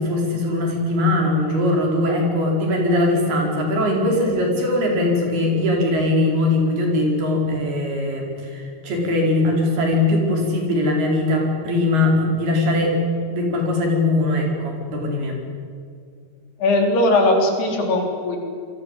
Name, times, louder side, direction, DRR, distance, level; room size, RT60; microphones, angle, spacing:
voice 1, 0.0-13.0 13.3-15.4, left 2 dB, 65° right, 1 dB, 6.6 m, -20 dB
voice 2, 16.6-18.4, left 2 dB, 65° left, 2 dB, 5.8 m, -19 dB
27.0 x 22.5 x 8.2 m, 2.3 s
omnidirectional pair, 5.0 m